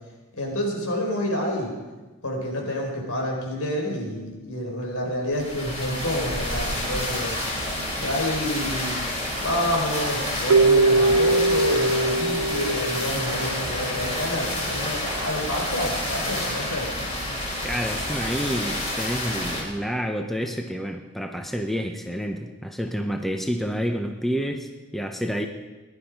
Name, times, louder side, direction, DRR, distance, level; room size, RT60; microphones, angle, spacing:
voice 1, 0.3-1.7 2.2-7.4 8.0-9.0 9.4-16.9, left 1 dB, 80° left, 0 dB, 4.3 m, -28 dB
sound 1, 5.3-19.6, left 1 dB, 30° left, 4.3 m, -29 dB
Keyboard (musical), 10.5-13.7, right 3 dB, 80° right, 0.5 m, -21 dB
voice 2, 17.6-25.5, equal, ahead, 4 dB, 0.8 m, -29 dB
19.5 x 11.5 x 5.2 m, 1.2 s
head